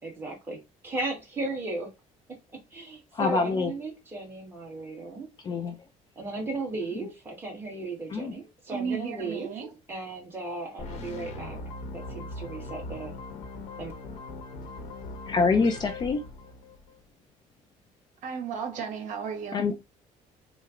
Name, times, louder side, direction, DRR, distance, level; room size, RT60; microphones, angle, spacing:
voice 1, 0.0-1.9 2.5-5.3 6.2-9.5 9.9-11.6 11.9-13.1 13.8-13.9, right 2 dB, 15° right, 1.3 m, -35 dB
voice 2, 3.1-3.7 5.4-5.8 8.1-8.3 15.3-16.2 19.5-19.7, left 4 dB, 30° left, 0.4 m, -25 dB
voice 3, 8.7-9.7 18.2-19.6, right 6 dB, 65° right, 1.0 m, -34 dB
sound 1, 10.8-16.9, left 2 dB, 55° left, 0.8 m, -40 dB
4.2 x 2.0 x 3.6 m
cardioid pair, 160°, 14 cm